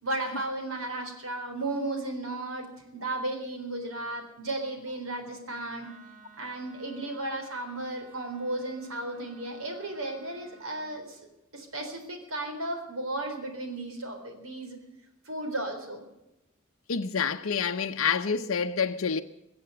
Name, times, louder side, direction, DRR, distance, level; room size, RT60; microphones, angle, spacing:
voice 1, 0.0-5.9 6.4-11.2 11.5-14.8 15.3-16.0, right 2 dB, 80° right, 3.9 m, -34 dB
Wind instrument woodwind instrument, 5.8-10.9, right 4 dB, 45° right, 5.3 m, -55 dB
voice 2, 16.9-19.2, left 6 dB, 70° left, 0.7 m, -28 dB
22.5 x 7.9 x 7.8 m
head